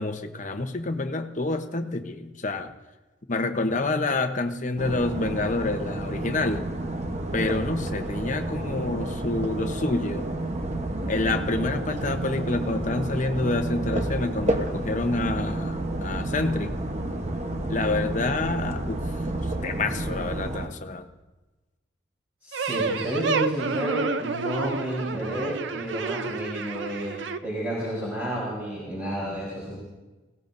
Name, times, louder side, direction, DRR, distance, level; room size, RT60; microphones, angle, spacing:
voice 1, 0.0-2.7 3.3-6.6 7.3-10.3 11.1-16.8 17.7-19.0 19.6-21.1, left 2 dB, 40° left, 6 dB, 0.9 m, -28 dB
sound 1, 4.8-20.7, right 1 dB, 35° right, 1.0 m, -30 dB
voice 2, 22.4-29.8, right 1 dB, 10° right, -7 dB, 4.1 m, -30 dB
sound 2, 22.5-27.4, right 4 dB, 65° right, 0.6 m, -30 dB
20.0 x 17.0 x 2.6 m, 1.2 s
head